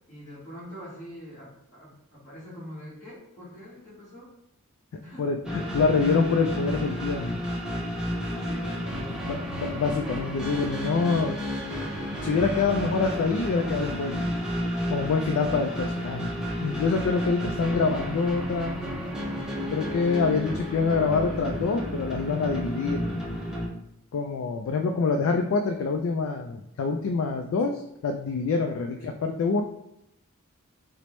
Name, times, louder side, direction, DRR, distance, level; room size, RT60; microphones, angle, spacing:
voice 1, 0.1-4.3 5.0-5.3 8.3-9.7 28.9-29.1, equal, 35° left, -10 dB, 1.2 m, -44 dB
voice 2, 5.2-7.4 9.1-11.4 12.2-14.4 14.9-16.3 16.6-18.8 19.7-23.3 24.1-29.6, left 4 dB, 65° left, 4 dB, 0.3 m, -26 dB
sound 1, 5.4-23.7, equal, 5° right, 0.5 m, -31 dB
4.4 x 2.0 x 3.0 m, 0.82 s
head